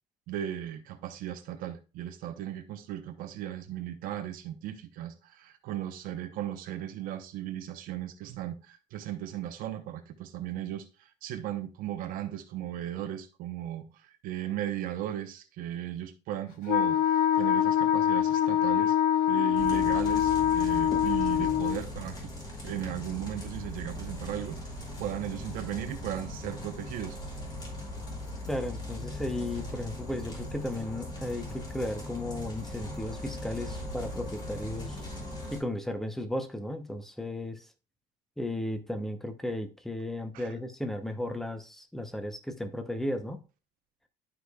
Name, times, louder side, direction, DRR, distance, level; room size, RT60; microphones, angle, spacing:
voice 1, 0.3-19.0 19.3-22.3 22.6-27.2 40.3-40.5, right 11 dB, 75° right, 0.9 m, -37 dB
Wind instrument woodwind instrument, 16.7-21.8, left 10 dB, 90° left, 0.4 m, -24 dB
sound 1, 19.6-35.6, left 1 dB, 30° left, 3.1 m, -39 dB
voice 2, 28.5-35.0 35.5-37.7 38.4-43.4, left 1 dB, ahead, 0.9 m, -35 dB
11.5 x 5.0 x 2.3 m
cardioid pair, 135°, 15 cm